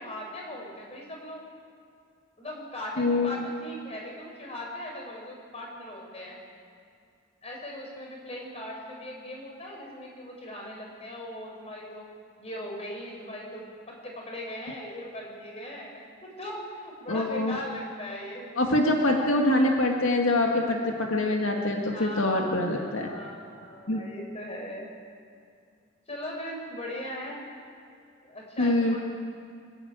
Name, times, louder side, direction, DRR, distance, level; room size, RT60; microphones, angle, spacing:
voice 1, 0.0-1.4 2.4-6.4 7.4-12.0 12.4-18.5 21.9-22.5 22.8-24.9 26.1-27.4 28.2-29.0, left 1 dB, 30° left, -1 dB, 5.5 m, -39 dB
voice 2, 3.0-3.3 17.1-17.6 18.6-23.1 23.9-24.0 28.6-29.0, left 1 dB, 90° left, 1 dB, 2.1 m, -24 dB
26.0 x 12.5 x 8.9 m, 2.4 s
head